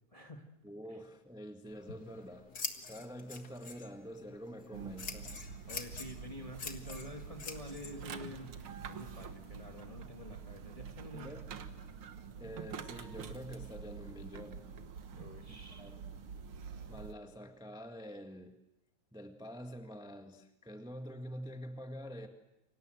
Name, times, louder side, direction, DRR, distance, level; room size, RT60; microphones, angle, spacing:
voice 1, 0.1-0.4 5.7-8.5 8.9-11.3 15.1-15.9, left 1 dB, 15° left, 4 dB, 1.3 m, -48 dB
voice 2, 0.6-2.5 2.9-5.3 11.1-11.5 12.4-14.7 15.5-16.1 16.9-18.5 19.1-22.3, equal, 5° right, 5 dB, 0.8 m, -47 dB
Scissors, 1.7-9.8, left 5 dB, 35° left, 2.1 m, -47 dB
sound 1, 4.7-17.1, right 6 dB, 55° right, 1.8 m, -47 dB
29.0 x 25.0 x 7.9 m, 0.86 s
omnidirectional pair, 3.5 m